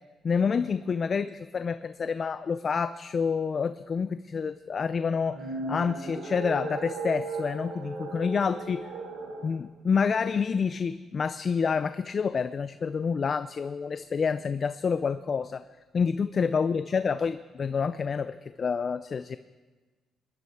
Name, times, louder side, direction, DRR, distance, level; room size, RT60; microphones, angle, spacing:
voice 1, 0.2-5.4 5.7-8.9 9.4-15.6 15.9-19.4, left 5 dB, 45° left, 13 dB, 0.4 m, -28 dB
sound 1, 5.1-9.5, right 3 dB, 85° right, 3.1 m, -36 dB
21.5 x 11.0 x 4.7 m, 1.3 s
cardioid pair, 90°, 0 cm